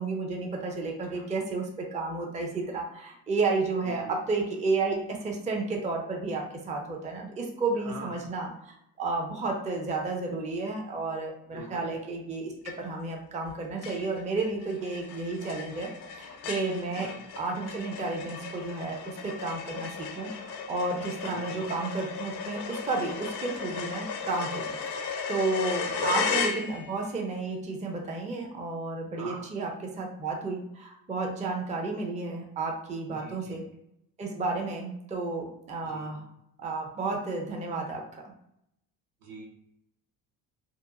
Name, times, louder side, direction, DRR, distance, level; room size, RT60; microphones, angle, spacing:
voice 1, 0.0-15.9 16.2-17.1 17.4-33.6 34.2-36.2 36.6-38.3, right 3 dB, 15° right, 1 dB, 0.5 m, -32 dB
voice 2, 3.8-4.2 7.8-8.2 11.5-11.9 16.9-17.2 21.2-21.7 25.8-26.1 29.2-29.4 33.1-33.6 35.8-36.2 39.2-39.5, right 3 dB, 65° right, -1 dB, 0.8 m, -43 dB
sound 1, 12.6-13.1 13.4-13.5 13.8-27.1, left 5 dB, 70° left, 0.6 m, -35 dB
2.8 x 2.2 x 2.3 m, 0.78 s
supercardioid pair, 70°, 42 cm